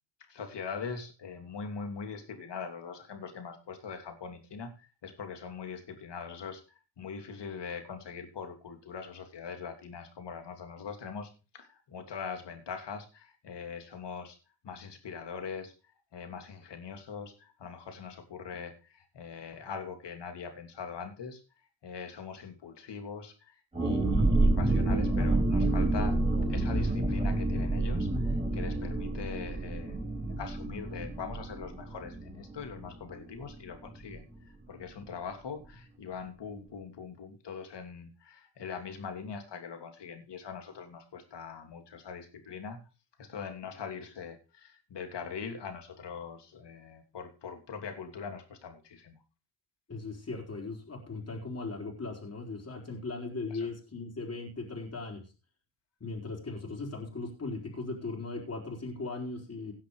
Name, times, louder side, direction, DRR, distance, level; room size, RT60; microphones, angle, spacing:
voice 1, 0.3-6.6 7.0-14.4 14.6-15.7 16.1-21.4 21.8-23.5 23.8-26.2 26.5-34.3 34.7-42.8 43.2-49.2 53.5-53.7, left 6 dB, 65° left, 5 dB, 3.0 m, -42 dB
sound 1, 23.7-33.2 33.4-33.5 33.9-34.1, right 2 dB, 15° right, 5.6 m, -28 dB
voice 2, 49.9-55.2 56.0-59.7, left 3 dB, 35° left, 0 dB, 4.4 m, -38 dB
18.0 x 5.9 x 4.9 m, 0.32 s
cardioid pair, 85°, 45 cm